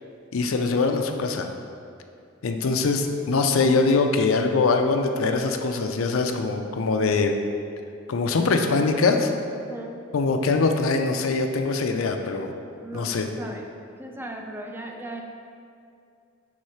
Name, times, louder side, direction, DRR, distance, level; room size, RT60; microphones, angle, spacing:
voice 1, 0.3-1.5 2.4-7.3 8.1-9.3 10.1-12.5 12.9-13.3, left 3 dB, 80° left, 5 dB, 0.5 m, -23 dB
voice 2, 9.5-10.0 12.8-13.6 14.0-15.2, right 1 dB, 10° right, 2 dB, 0.4 m, -37 dB
6.4 x 3.7 x 5.7 m, 2.4 s
head